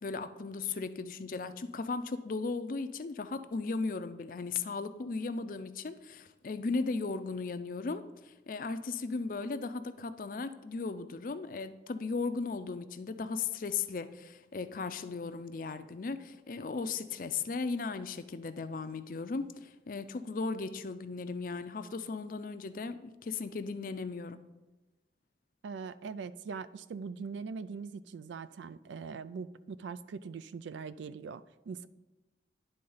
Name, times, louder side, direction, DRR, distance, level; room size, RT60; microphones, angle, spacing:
voice 1, 0.0-24.4, left 4 dB, 50° left, 11 dB, 0.4 m, -36 dB
voice 2, 25.6-31.9, right 5 dB, 90° right, 15 dB, 0.4 m, -42 dB
10.0 x 3.8 x 5.5 m, 1.1 s
head